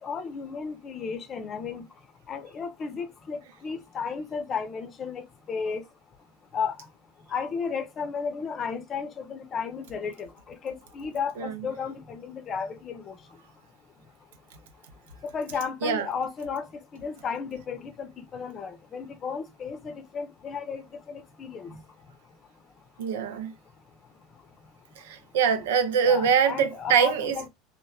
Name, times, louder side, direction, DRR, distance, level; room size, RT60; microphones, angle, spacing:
voice 1, 0.0-1.8 2.3-5.8 6.5-6.8 7.3-13.2 15.2-16.6 16.9-21.8 26.0-27.5, left 6 dB, 40° left, 0.6 m, -34 dB
voice 2, 23.0-23.5 25.0-27.4, right 7 dB, 80° right, 0.5 m, -24 dB
2.9 x 2.1 x 2.3 m
hypercardioid pair, 80°, 0 cm